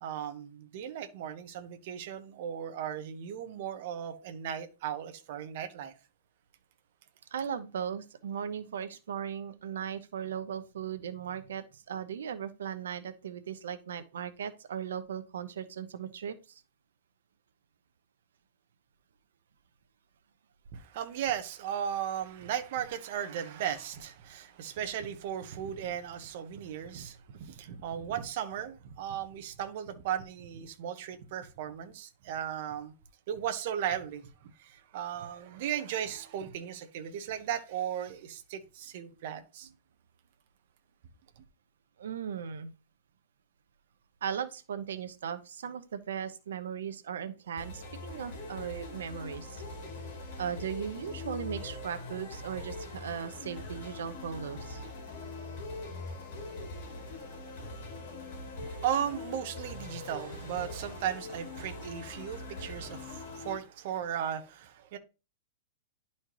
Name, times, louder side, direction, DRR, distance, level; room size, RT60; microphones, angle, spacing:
voice 1, 0.0-5.9 20.7-32.9 33.3-34.2 34.6-39.7 58.6-65.0, right 9 dB, 45° right, 0.9 m, -36 dB
voice 2, 7.3-16.6 42.0-42.7 44.2-49.6 50.4-54.8, right 8 dB, 90° right, 0.8 m, -37 dB
sound 1, 47.6-63.6, left 2 dB, 45° left, 2.9 m, -42 dB
11.0 x 4.3 x 3.0 m
supercardioid pair, 170°, 0 cm